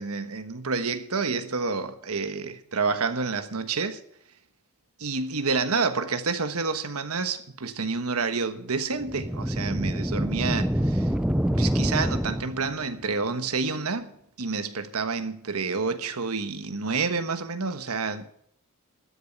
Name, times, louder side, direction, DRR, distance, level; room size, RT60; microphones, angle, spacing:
voice 1, 0.0-4.0 5.0-11.1 11.6-14.1 14.4-18.3, right 4 dB, 80° right, 1.3 m, -29 dB
sound 1, 9.0-12.8, equal, 5° right, 0.4 m, -26 dB
12.5 x 7.3 x 9.1 m
head